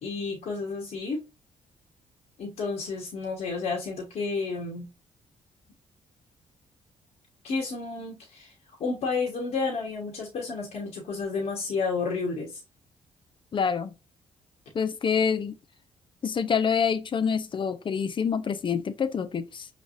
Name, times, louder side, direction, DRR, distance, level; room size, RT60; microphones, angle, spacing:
voice 1, 0.0-1.2 2.4-4.9 7.4-8.5 8.8-12.6, left 4 dB, 70° left, 1.4 m, -31 dB
voice 2, 13.5-13.9 14.7-15.6 16.2-19.7, left 6 dB, 45° left, 0.6 m, -26 dB
5.0 x 3.3 x 2.6 m
supercardioid pair, 60°, 12 cm